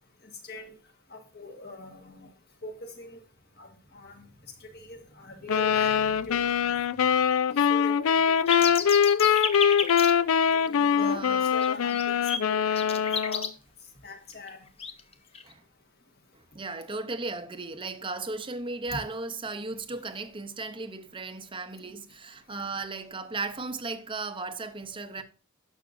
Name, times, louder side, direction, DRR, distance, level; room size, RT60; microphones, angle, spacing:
voice 1, 1.1-2.3 2.6-3.2 3.6-3.7 3.9-4.2 4.6-6.0 6.3-6.4 7.7-8.7 10.5-13.4 14.0-14.6 18.9-19.0, left 2 dB, 45° left, 1.5 m, -42 dB
sound 1, 5.5-13.5, left 7 dB, 75° left, 0.4 m, -23 dB
sound 2, 8.5-10.1 11.0-11.1 11.4-13.5 14.5-14.6 14.8-15.5, left 5 dB, 30° left, 0.6 m, -31 dB
voice 2, 10.9-11.6 15.4-15.6 16.3-25.2, right 3 dB, 25° right, 0.6 m, -36 dB
11.0 x 6.2 x 2.5 m
head